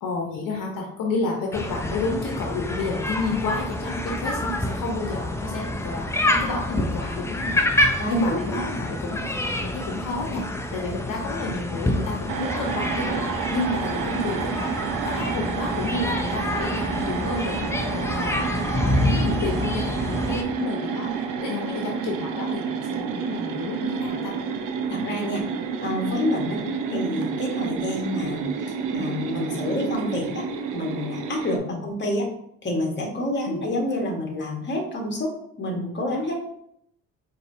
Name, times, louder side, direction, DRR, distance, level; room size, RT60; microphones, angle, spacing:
voice 1, 0.0-7.7 8.1-9.3 9.6-10.5 10.7-13.2 13.5-21.1 21.4-24.3 26.4-26.6 31.5-31.8 33.5-33.6, left 3 dB, 70° left, 0 dB, 0.8 m, -30 dB
sound 1, 1.5-20.4, left 1 dB, 10° left, 0.5 m, -27 dB
voice 2, 8.0-8.7 14.1-14.2 21.2-21.3 24.8-25.4 25.8-26.6 26.9-28.5 28.9-30.4 30.7-32.3 32.6-36.4, left 1 dB, 30° left, 0 dB, 1.3 m, -28 dB
sound 2, 12.3-31.6, right 6 dB, 70° right, 0.6 m, -30 dB
4.7 x 2.8 x 2.7 m, 0.72 s
supercardioid pair, 70°, 34 cm